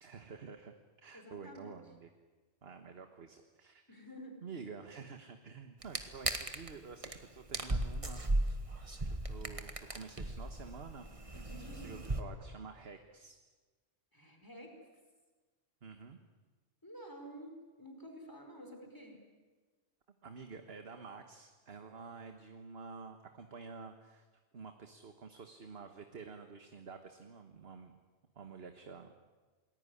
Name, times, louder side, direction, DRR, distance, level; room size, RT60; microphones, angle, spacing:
voice 1, 0.0-2.1 2.6-3.8 4.4-8.2 9.0-11.1 11.3-13.4 15.8-16.2 20.2-24.3 24.5-27.9 28.3-29.1, right 5 dB, 60° right, 6 dB, 1.6 m, -49 dB
voice 2, 1.1-1.7 3.9-4.4 11.5-12.1 14.1-14.7 16.8-19.2, equal, 15° left, 3 dB, 5.0 m, -50 dB
sound 1, 5.8-6.7 7.0-7.2 7.5-12.2, right 1 dB, 30° right, 1.8 m, -36 dB
28.0 x 20.5 x 10.0 m, 1.3 s
omnidirectional pair, 1.2 m